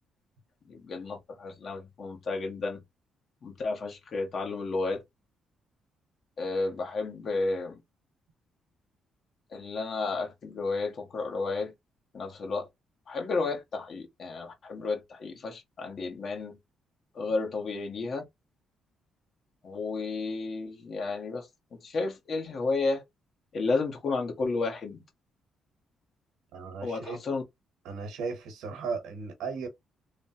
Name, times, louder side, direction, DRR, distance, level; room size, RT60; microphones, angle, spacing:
voice 1, 0.7-2.8 3.4-5.0 6.4-7.8 9.5-11.7 12.1-12.7 13.1-16.6 17.1-18.2 19.6-23.0 23.5-25.0 26.8-27.4, left 3 dB, 55° left, 1.2 m, -32 dB
voice 2, 26.5-27.2 27.8-29.7, right 5 dB, 90° right, 0.9 m, -36 dB
3.2 x 2.1 x 2.8 m
cardioid pair, 90°, 0 cm